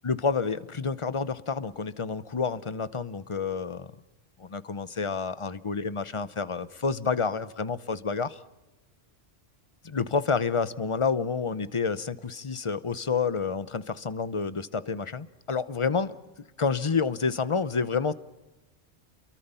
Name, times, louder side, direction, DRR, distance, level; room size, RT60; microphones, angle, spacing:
voice 1, 0.0-3.9 4.4-8.4 9.8-16.2 16.6-18.1, left 5 dB, 30° left, 15 dB, 0.8 m, -29 dB
29.5 x 23.0 x 5.6 m, 1.0 s
omnidirectional pair, 1.2 m